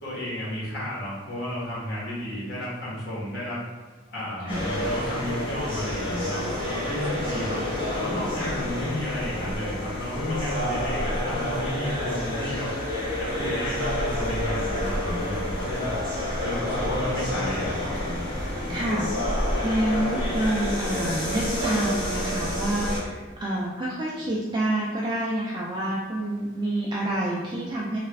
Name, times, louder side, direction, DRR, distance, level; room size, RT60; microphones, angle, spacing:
voice 1, 0.0-3.6 4.1-7.6 7.9-12.7 13.2-16.0 16.4-18.2 18.6-18.8, left 1 dB, 60° left, -7 dB, 1.4 m, -32 dB
sound 1, 4.5-23.0, left 1 dB, 25° left, 1.0 m, -29 dB
voice 2, 17.3-17.7 18.7-19.3 19.6-28.0, right 1 dB, 25° right, -5 dB, 0.4 m, -28 dB
3.2 x 2.4 x 3.2 m, 1.4 s
head